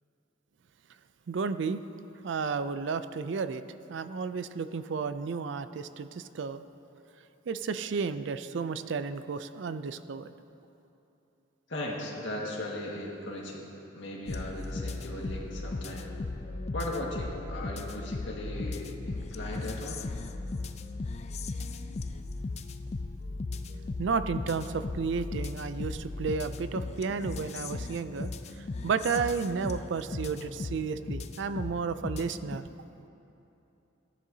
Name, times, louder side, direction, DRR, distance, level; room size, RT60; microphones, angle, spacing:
voice 1, 1.3-1.8 2.2-3.6 3.9-6.6 7.5-10.3 22.1-22.3 23.2-32.6, right 5 dB, 65° right, 12 dB, 0.4 m, -33 dB
voice 2, 11.7-13.7 13.9-16.1 16.7-20.0, left 1 dB, 65° left, -3 dB, 1.8 m, -37 dB
sound 1, 14.3-32.6, left 3 dB, 35° left, 0.4 m, -37 dB
16.5 x 11.0 x 2.8 m, 2.9 s
head